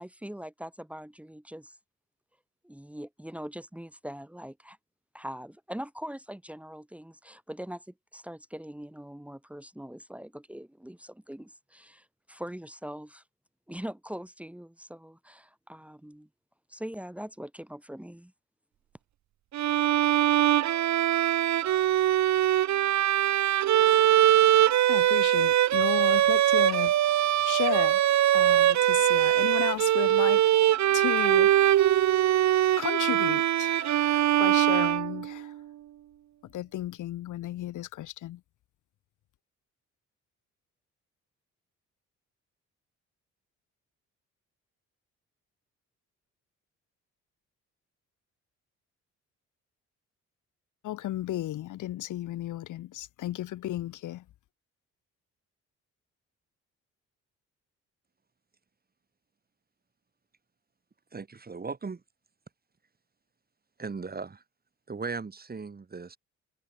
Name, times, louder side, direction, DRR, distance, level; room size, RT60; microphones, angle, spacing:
voice 1, 0.0-1.8 2.6-4.8 5.1-13.2 13.7-16.3 16.7-18.3, equal, 5° right, 2.6 m, -42 dB
Bowed string instrument, 19.5-35.5, right 12 dB, 65° right, 1.1 m, -22 dB
voice 2, 24.9-28.0 28.3-32.1 32.8-35.5 36.4-38.4 50.8-54.2, left 14 dB, 80° left, 2.5 m, -34 dB
voice 3, 61.1-62.0 63.8-64.4 64.9-66.2, right 4 dB, 30° right, 5.5 m, -37 dB
cardioid pair, 90°, 30 cm